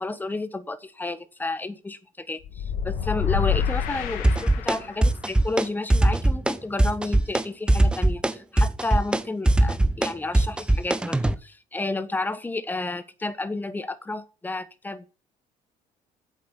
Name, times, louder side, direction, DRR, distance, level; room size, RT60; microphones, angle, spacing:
voice 1, 0.0-15.1, left 2 dB, 15° left, 13 dB, 1.2 m, -31 dB
sound 1, 2.4-5.1, left 7 dB, 90° left, 2.0 m, -27 dB
sound 2, 4.2-4.8 5.0-5.7 5.9-6.5 6.8-7.4 7.7-11.4, right 1 dB, 5° right, 0.8 m, -20 dB
8.4 x 7.7 x 8.0 m, 0.36 s
cardioid pair, 120°, 14 cm